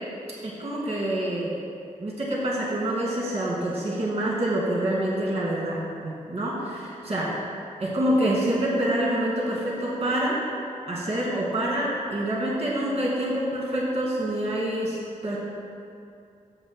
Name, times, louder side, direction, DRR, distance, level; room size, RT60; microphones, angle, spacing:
voice 1, 0.4-1.5 2.0-7.3 7.8-10.4 10.9-15.4, right 1 dB, 50° right, -5 dB, 2.1 m, -26 dB
14.5 x 7.8 x 2.2 m, 2.5 s
wide cardioid pair, 115°, 14 cm